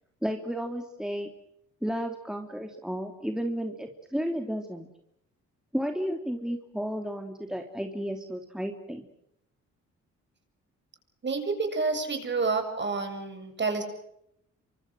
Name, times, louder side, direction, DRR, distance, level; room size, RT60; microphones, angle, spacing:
voice 1, 0.2-1.3 1.8-4.9 5.7-9.1, equal, ahead, 4 dB, 3.1 m, -32 dB
voice 2, 11.2-13.8, right 4 dB, 35° right, 7 dB, 7.6 m, -29 dB
28.5 x 25.5 x 6.4 m, 0.76 s
cardioid pair, 90°, 30 cm